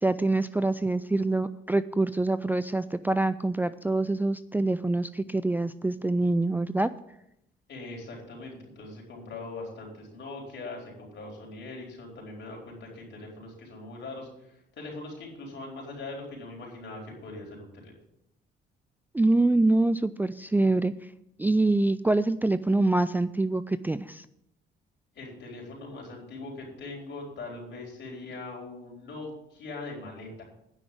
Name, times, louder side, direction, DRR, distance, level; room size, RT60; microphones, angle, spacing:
voice 1, 0.0-6.9 19.1-20.9 21.4-24.3, right 2 dB, 10° right, 13 dB, 0.4 m, -25 dB
voice 2, 7.7-17.9 25.1-30.4, left 2 dB, 65° left, -1 dB, 4.7 m, -41 dB
9.9 x 6.1 x 8.7 m, 0.80 s
cardioid pair, 90°, 20 cm